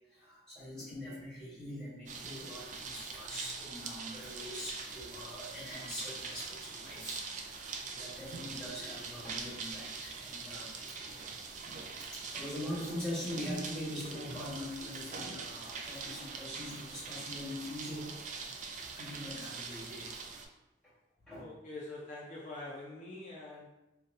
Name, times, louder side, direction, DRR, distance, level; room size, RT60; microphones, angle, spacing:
voice 1, 0.1-11.0 12.0-18.4 18.9-20.2 21.3-21.5, left 1 dB, 5° left, -11 dB, 1.5 m, -43 dB
sound 1, 2.1-20.4, right 4 dB, 45° right, 0.3 m, -43 dB
voice 2, 21.4-23.7, left 2 dB, 45° left, -5 dB, 0.5 m, -45 dB
3.9 x 2.2 x 2.6 m, 0.93 s
head